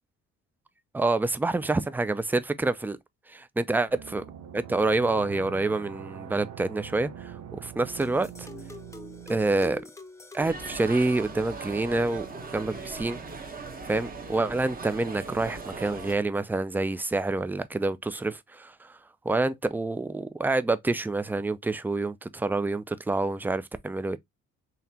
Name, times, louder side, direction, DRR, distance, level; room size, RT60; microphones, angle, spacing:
voice 1, 0.9-3.0 3.3-4.2 4.5-8.5 9.3-9.8 10.3-12.3 12.5-13.2 13.9-18.9 19.2-24.2, right 2 dB, 5° right, 0.3 m, -27 dB
sound 1, 3.9-9.8, right 9 dB, 70° right, 0.7 m, -43 dB
sound 2, 8.0-11.5, left 2 dB, 10° left, 0.7 m, -46 dB
sound 3, 10.4-16.1, right 4 dB, 30° right, 0.9 m, -39 dB
3.9 x 2.8 x 2.7 m
cardioid pair, 90°, 30 cm